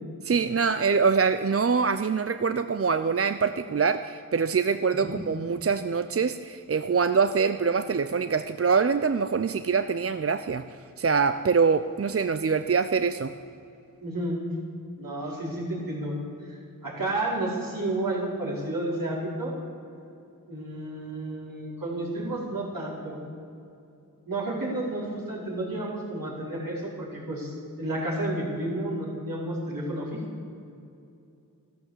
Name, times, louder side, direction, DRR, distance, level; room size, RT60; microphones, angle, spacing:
voice 1, 0.2-13.3, right 5 dB, 40° right, 10 dB, 0.5 m, -24 dB
voice 2, 14.0-14.4 15.0-16.2 16.8-19.5 20.5-23.2 24.3-30.2, right 1 dB, 65° right, -5 dB, 4.8 m, -31 dB
13.5 x 12.5 x 7.4 m, 2.6 s
wide cardioid pair, 50°, 36 cm